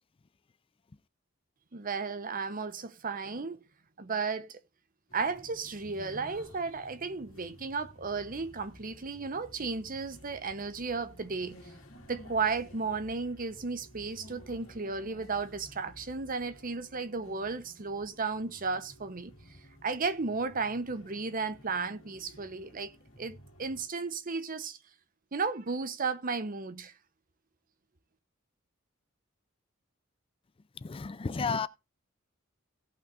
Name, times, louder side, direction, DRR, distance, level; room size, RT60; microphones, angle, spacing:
voice 1, 1.7-3.6 4.0-4.6 5.1-11.6 12.1-19.3 19.8-22.9 23.2-24.8 25.3-26.9, right 4 dB, 45° right, 0.8 m, -34 dB
sound 1, 5.1-23.9, equal, 80° left, 2.2 m, -53 dB
voice 2, 30.8-31.7, left 5 dB, 25° left, 0.4 m, -32 dB
17.5 x 5.8 x 2.5 m
head